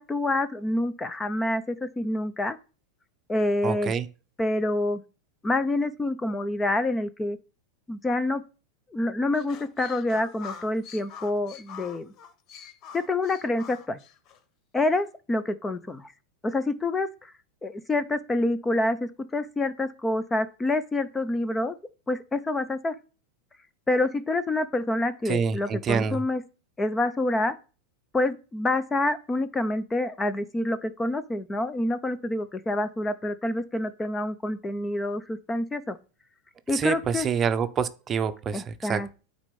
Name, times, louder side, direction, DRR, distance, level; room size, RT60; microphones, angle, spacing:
voice 1, 0.0-2.6 3.3-3.9 4.4-5.0 5.4-7.4 7.9-8.4 8.9-12.1 12.9-14.0 14.7-16.1 16.4-17.3 17.6-21.7 22.1-22.9 23.9-26.4 26.8-27.6 28.1-36.0 36.7-37.3 38.5-39.1, left 2 dB, 15° left, 0.6 m, -27 dB
voice 2, 3.6-4.1 25.3-26.2 36.7-39.2, right 6 dB, 30° right, 0.7 m, -27 dB
sound 1, 9.3-14.4, left 7 dB, 45° left, 0.9 m, -45 dB
9.0 x 4.2 x 5.3 m
hypercardioid pair, 115°, 0 cm